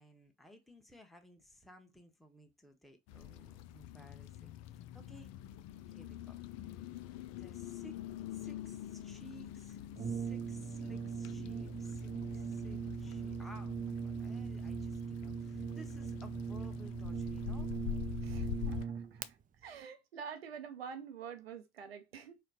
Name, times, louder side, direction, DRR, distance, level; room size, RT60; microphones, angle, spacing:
voice 1, 0.0-5.4 5.9-6.4 7.4-8.0 8.3-17.7 18.5-18.7, equal, ahead, 1.1 m, -57 dB
sound 1, 3.1-18.8, left 12 dB, 60° left, 0.5 m, -45 dB
Brass instrument, 10.0-19.3, right 6 dB, 25° right, 0.5 m, -40 dB
voice 2, 18.2-22.4, right 7 dB, 90° right, 0.6 m, -47 dB
4.3 x 2.2 x 4.0 m
hypercardioid pair, 50°, 30 cm